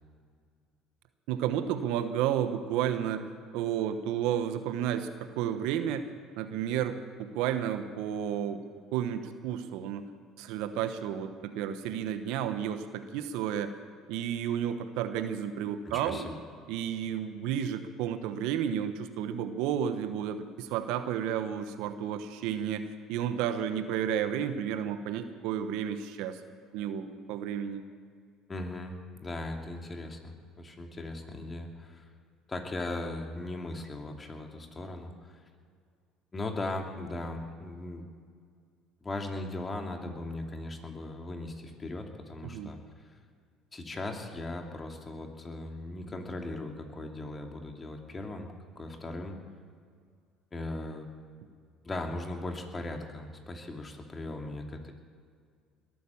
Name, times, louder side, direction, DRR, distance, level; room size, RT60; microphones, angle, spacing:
voice 1, 1.3-3.3 3.5-6.1 6.4-8.6 8.9-10.0 10.4-13.7 14.1-16.3 16.7-26.4 26.7-27.8 42.4-42.7, right 9 dB, 75° right, 10 dB, 1.1 m, -32 dB
voice 2, 15.8-16.3 28.5-28.9 29.2-32.1 32.5-35.4 36.3-38.1 39.0-42.8 43.1-43.2 43.7-49.4 50.5-51.1 51.8-54.9, left 2 dB, 25° left, 3 dB, 2.7 m, -38 dB
21.0 x 9.3 x 7.1 m, 2.1 s
supercardioid pair, 75°, 0 cm